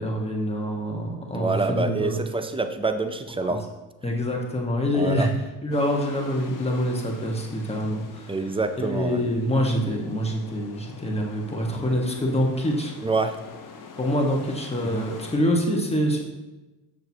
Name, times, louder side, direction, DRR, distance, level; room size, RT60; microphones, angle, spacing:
voice 1, 0.0-2.3 3.4-3.6 4.0-5.3 5.6-8.4 8.8-12.9 14.0-16.2, equal, 15° left, 0 dB, 1.4 m, -25 dB
voice 2, 1.3-3.6 4.9-5.3 8.3-9.2 13.0-13.4 14.8-15.1, right 3 dB, 10° right, 9 dB, 0.4 m, -26 dB
sound 1, 5.7-15.4, left 5 dB, 40° left, 1.0 m, -45 dB
6.4 x 6.2 x 2.8 m, 1.1 s
supercardioid pair, 75°, 47 cm